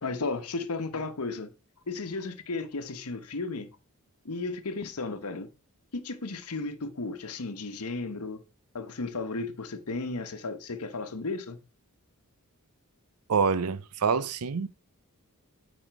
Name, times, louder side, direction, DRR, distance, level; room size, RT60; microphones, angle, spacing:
voice 1, 0.0-1.5 1.9-3.7 4.2-5.5 5.9-8.4 8.7-11.6, left 3 dB, 85° left, 1.0 m, -34 dB
voice 2, 13.3-14.7, right 5 dB, 80° right, 0.6 m, -26 dB
9.0 x 4.2 x 4.6 m
head